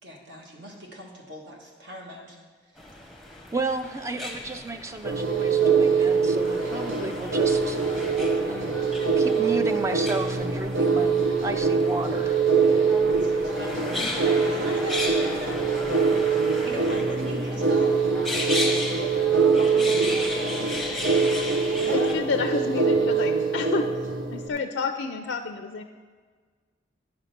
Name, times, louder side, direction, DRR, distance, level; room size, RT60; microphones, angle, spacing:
voice 1, 0.0-2.4 10.7-10.9 13.1-15.8 16.6-18.8 19.6-20.7 21.0-22.3, equal, 65° right, 0 dB, 1.5 m, -40 dB
sound 1, 2.8-22.1, left 1 dB, ahead, 0.7 m, -35 dB
voice 2, 3.5-8.1 8.5-8.8 9.2-12.4, right 3 dB, 15° right, 8 dB, 0.3 m, -33 dB
sound 2, 5.0-24.5, right 5 dB, 85° right, 0.8 m, -23 dB
voice 3, 21.9-23.8 24.3-25.8, left 4 dB, 75° left, 5 dB, 0.4 m, -29 dB
9.9 x 5.2 x 5.8 m, 1.5 s
head